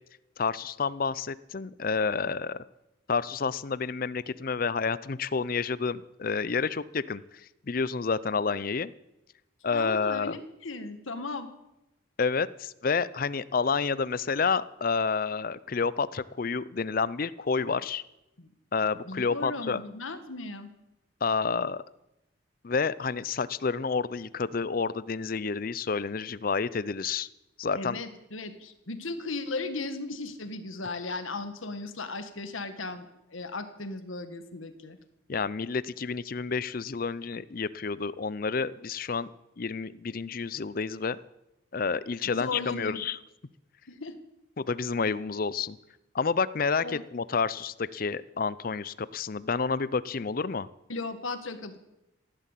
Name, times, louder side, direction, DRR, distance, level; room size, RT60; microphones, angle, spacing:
voice 1, 0.4-2.6 3.1-7.2 7.7-8.9 9.6-10.4 12.2-18.0 18.7-19.8 21.2-21.8 22.6-27.3 27.6-28.0 35.3-39.3 39.6-41.2 41.7-43.2 44.6-45.8 46.1-50.7, left 5 dB, 45° left, 18 dB, 0.5 m, -29 dB
voice 2, 9.7-11.5 18.4-18.5 19.1-20.7 27.7-35.0 42.3-43.1 43.9-44.2 46.8-47.0 50.9-51.8, left 3 dB, 90° left, 9 dB, 1.7 m, -36 dB
15.5 x 11.0 x 8.3 m, 0.91 s
head